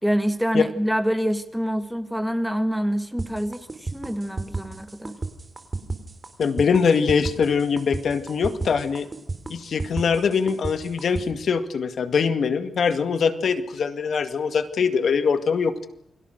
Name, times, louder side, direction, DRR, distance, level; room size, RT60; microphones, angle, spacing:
voice 1, 0.0-5.2, equal, ahead, 9 dB, 1.7 m, -26 dB
sound 1, 3.2-11.2, right 3 dB, 25° right, 3.2 m, -32 dB
voice 2, 6.4-9.1 9.5-15.9, left 6 dB, 65° left, 9 dB, 2.1 m, -22 dB
29.0 x 22.5 x 6.6 m, 0.72 s
wide cardioid pair, 140°, 0 cm